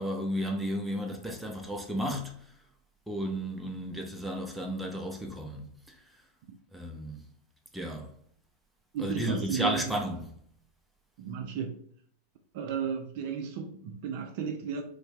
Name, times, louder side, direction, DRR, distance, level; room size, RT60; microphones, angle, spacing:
voice 1, 0.0-2.3 3.1-5.7 6.7-7.2 7.7-8.1 9.0-10.3, equal, 5° right, 0.6 m, -33 dB
voice 2, 8.9-9.9 11.2-11.8 12.5-14.8, right 7 dB, 50° right, 0.4 m, -34 dB
3.1 x 2.6 x 3.5 m
figure-of-eight pair, 90°, 0 cm